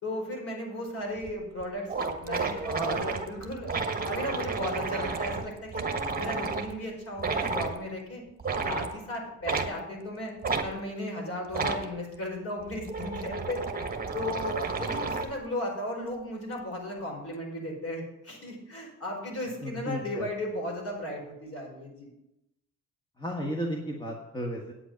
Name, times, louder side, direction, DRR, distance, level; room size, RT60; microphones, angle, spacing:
voice 1, 0.0-3.7 4.1-5.8 6.1-8.2 8.6-10.3 10.6-13.8 14.1-22.1, left 1 dB, 50° left, 0 dB, 4.6 m, -35 dB
sound 1, 1.2-1.3 1.6-1.7 1.9-6.7 7.2-7.7 8.4-8.9 9.5-9.7 10.4-10.7 11.5-11.8 12.6-15.4, right 4 dB, 30° right, 1.3 m, -31 dB
voice 2, 19.6-20.3 23.2-24.7, equal, 15° left, 0 dB, 1.5 m, -34 dB
8.8 x 8.2 x 5.8 m, 0.88 s
cardioid pair, 90°, 30 cm